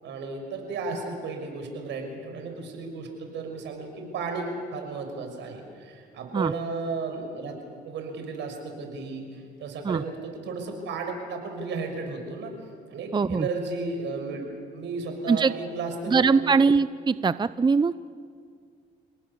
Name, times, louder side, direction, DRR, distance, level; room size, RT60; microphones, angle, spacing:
voice 1, 0.0-7.6 7.8-12.5 12.9-14.4 14.7-16.5, right 4 dB, 75° right, 4 dB, 5.8 m, -34 dB
voice 2, 13.1-13.5 15.3-15.5 16.1-17.9, right 5 dB, 25° right, 15 dB, 0.6 m, -22 dB
29.5 x 19.0 x 7.0 m, 2.1 s
supercardioid pair, 75°, 19 cm